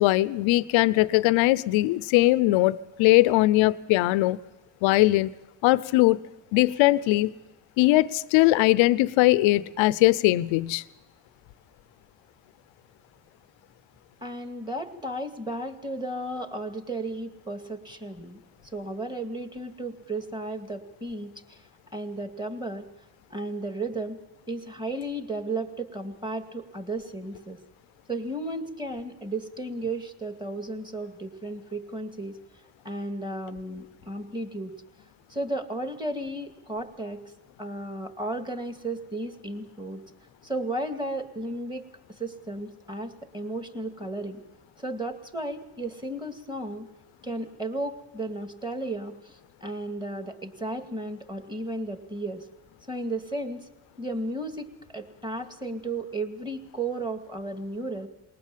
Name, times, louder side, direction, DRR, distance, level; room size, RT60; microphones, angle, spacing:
voice 1, 0.0-4.4 4.8-5.3 5.6-6.2 6.5-7.3 7.8-10.8, left 18 dB, 85° left, 19 dB, 0.7 m, -20 dB
voice 2, 14.2-18.4 18.7-21.6 21.9-22.9 23.3-24.2 24.5-27.6 28.1-32.4 32.8-34.8 35.3-37.2 37.6-40.0 40.4-41.9 42.2-44.4 44.8-46.9 47.2-52.5 52.9-53.7 54.0-54.7 54.9-58.1, right 2 dB, 10° right, 6 dB, 2.2 m, -34 dB
20.5 x 19.0 x 7.4 m, 1.0 s
supercardioid pair, 65°, 45 cm